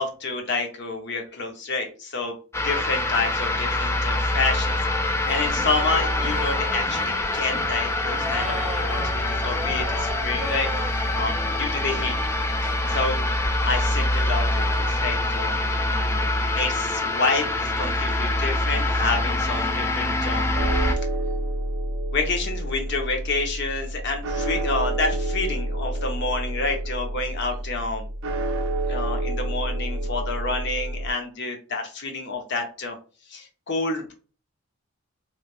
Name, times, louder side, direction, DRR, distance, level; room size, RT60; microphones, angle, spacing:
voice 1, 0.0-2.3 2.6-4.8 5.0-12.1 12.9-13.2 13.6-15.6 15.8-20.4 22.1-28.1 28.9-33.0 33.3-34.1, left 3 dB, 55° left, 3 dB, 0.8 m, -29 dB
sound 1, 2.5-21.0, left 2 dB, 15° left, 0.3 m, -25 dB
sound 2, 5.3-15.0, right 1 dB, 10° right, 0.7 m, -36 dB
sound 3, 20.6-31.1, right 1 dB, 65° right, 0.5 m, -28 dB
3.4 x 3.1 x 2.4 m, 0.37 s
head